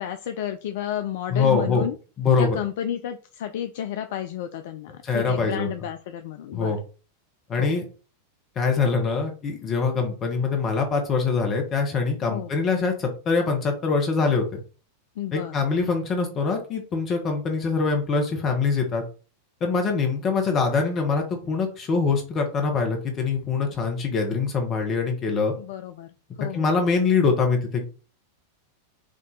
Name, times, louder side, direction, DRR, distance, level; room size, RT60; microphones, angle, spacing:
voice 1, 0.0-1.9 2.4-6.7 7.6-7.7 12.3-12.6 15.2-15.7 25.6-26.1 26.4-26.7, left 10 dB, 50° left, 8 dB, 0.3 m, -31 dB
voice 2, 1.3-1.8 2.2-2.6 5.0-5.7 6.5-6.8 7.5-7.8 8.6-14.6 15.3-19.0 19.6-25.5 26.4-27.8, left 4 dB, 30° left, 3 dB, 1.0 m, -24 dB
5.1 x 2.7 x 3.9 m, 0.36 s
figure-of-eight pair, 90°, 0 cm